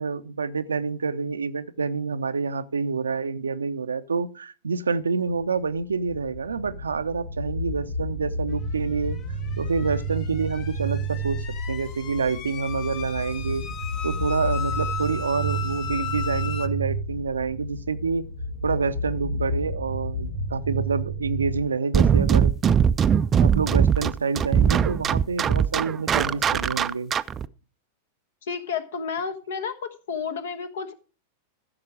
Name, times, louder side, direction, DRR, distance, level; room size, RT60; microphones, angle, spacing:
voice 1, 0.0-9.2 9.6-13.6 14.0-18.2 18.6-22.5 23.4-27.1, right 5 dB, 75° right, 0.6 m, -27 dB
sound 1, 5.3-21.6, right 1 dB, 85° left, 2.5 m, -31 dB
sound 2, 9.1-16.7, left 7 dB, 40° left, 1.0 m, -36 dB
sound 3, 21.9-27.5, right 7 dB, 25° right, 0.4 m, -20 dB
voice 2, 28.5-30.9, left 6 dB, 60° left, 1.2 m, -31 dB
14.5 x 6.6 x 4.9 m
figure-of-eight pair, 90°, 0 cm